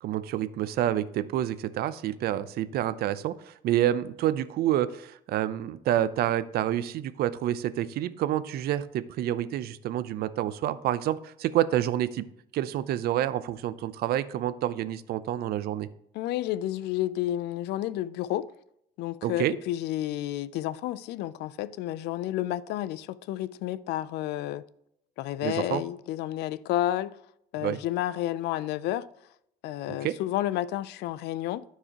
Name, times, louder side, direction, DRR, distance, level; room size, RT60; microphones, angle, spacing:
voice 1, 0.0-12.3 12.5-15.9 19.2-19.6 25.4-25.8 27.6-27.8 29.9-30.2, right 12 dB, 65° right, 0.5 m, -28 dB
voice 2, 16.1-18.5 19.0-24.6 25.2-27.2 27.5-29.1 29.6-31.6, left 13 dB, 80° left, 0.4 m, -31 dB
13.0 x 4.7 x 2.9 m
cardioid pair, 110°, 17 cm